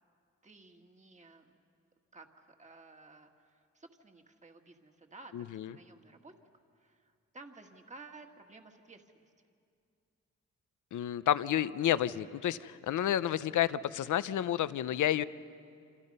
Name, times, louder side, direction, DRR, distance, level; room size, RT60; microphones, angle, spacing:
voice 1, 0.4-1.5 2.1-6.3 6.8-9.3, right 3 dB, 25° right, 4 dB, 1.8 m, -54 dB
voice 2, 5.3-5.7 10.9-15.2, left 11 dB, 85° left, 15 dB, 0.7 m, -30 dB
28.0 x 27.0 x 5.5 m, 2.3 s
cardioid pair, 110°, 30 cm